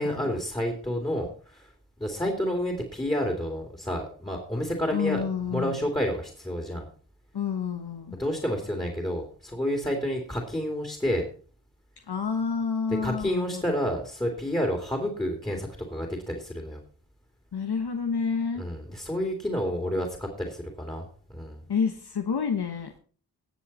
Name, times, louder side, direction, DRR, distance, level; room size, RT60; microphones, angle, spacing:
voice 1, 0.0-1.7 2.0-6.9 8.2-11.3 13.0-16.8 18.6-21.6, equal, 10° left, 2 dB, 2.8 m, -30 dB
voice 2, 4.9-5.8 7.3-8.2 12.1-13.8 17.5-18.7 21.7-22.9, left 6 dB, 75° left, 5 dB, 1.2 m, -29 dB
19.0 x 7.1 x 4.3 m, 0.42 s
cardioid pair, 50°, 39 cm